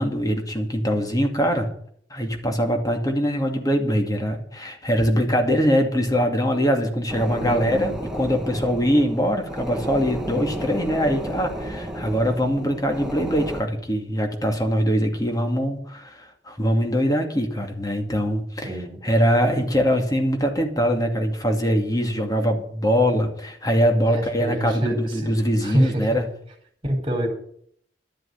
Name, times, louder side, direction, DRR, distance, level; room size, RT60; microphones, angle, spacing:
voice 1, 0.0-1.7 2.1-26.3, equal, 20° left, 3 dB, 2.4 m, -22 dB
sound 1, 7.1-13.6, right 1 dB, 5° right, 1.8 m, -33 dB
voice 2, 7.4-7.9 18.6-19.0 24.0-25.3 25.6-26.1 26.8-27.3, right 1 dB, 30° right, 4 dB, 4.3 m, -26 dB
12.5 x 7.9 x 9.5 m, 0.63 s
head